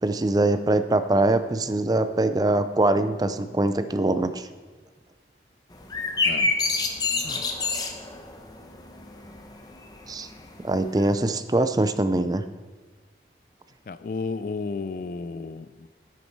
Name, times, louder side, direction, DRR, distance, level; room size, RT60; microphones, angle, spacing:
voice 1, 0.0-4.5 10.1-10.3 10.6-12.4, right 2 dB, 20° right, 11 dB, 0.4 m, -23 dB
sound 1, 5.7-11.1, left 3 dB, 20° left, 0.8 m, -28 dB
voice 2, 13.9-15.9, left 4 dB, 50° left, 14 dB, 0.3 m, -33 dB
10.0 x 9.6 x 4.6 m, 1.5 s
head